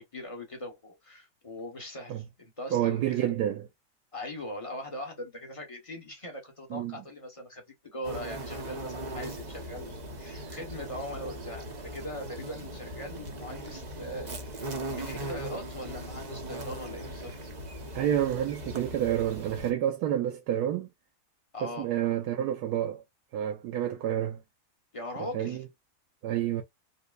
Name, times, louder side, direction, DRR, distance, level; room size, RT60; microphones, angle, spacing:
voice 1, 0.0-3.3 4.1-14.5 14.9-17.5 21.5-21.9 24.9-25.6, left 1 dB, 25° left, 1.0 m, -41 dB
voice 2, 2.7-3.7 6.7-6.9 17.9-20.9 21.6-23.0 23.3-24.4 25.3-25.6 26.2-26.6, right 11 dB, 90° right, 1.2 m, -29 dB
sound 1, 8.0-19.7, right 1 dB, 35° right, 0.8 m, -39 dB
5.4 x 2.1 x 2.3 m
omnidirectional pair, 1.7 m